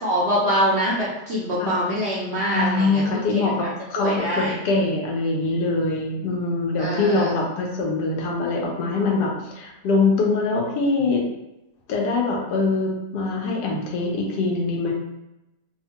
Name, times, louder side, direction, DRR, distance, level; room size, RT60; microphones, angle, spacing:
voice 1, 0.0-3.7 4.0-4.5 6.8-7.3, equal, 65° right, -6 dB, 0.6 m, -24 dB
voice 2, 2.5-3.5 3.9-11.2 11.9-14.9, left 3 dB, 85° left, -1 dB, 1.3 m, -23 dB
3.1 x 2.1 x 2.8 m, 0.93 s
omnidirectional pair, 1.7 m